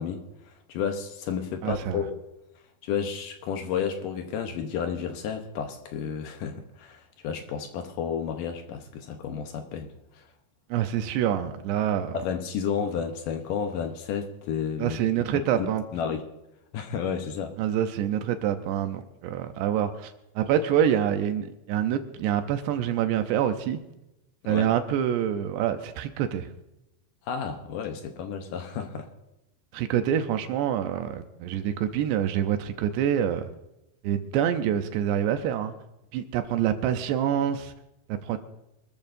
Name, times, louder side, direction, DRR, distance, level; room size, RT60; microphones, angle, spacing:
voice 1, 0.0-2.2 2.8-10.3 12.1-15.0 15.3-15.7 15.9-16.3 16.7-17.6 24.4-24.7 27.2-29.1, left 7 dB, 75° left, 2.1 m, -32 dB
voice 2, 1.6-2.0 10.7-12.2 14.8-15.8 17.6-23.8 24.5-26.5 29.7-33.5 34.0-35.7 36.1-37.7 38.1-38.4, right 10 dB, 80° right, 2.9 m, -26 dB
24.5 x 14.0 x 2.7 m
omnidirectional pair, 5.0 m